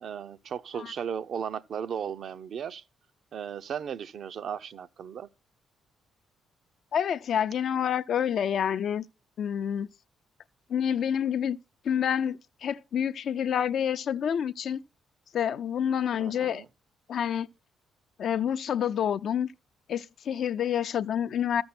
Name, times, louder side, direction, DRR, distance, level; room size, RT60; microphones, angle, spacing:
voice 1, 0.0-2.8 3.3-5.3 16.2-16.7, right 8 dB, 60° right, 0.6 m, -36 dB
voice 2, 6.9-9.1 9.4-9.9 10.7-11.6 11.8-14.8 15.3-16.6 17.1-17.5 18.2-19.5 19.9-21.6, left 8 dB, 65° left, 0.5 m, -28 dB
13.0 x 7.0 x 4.3 m
cardioid pair, 90°, 0 cm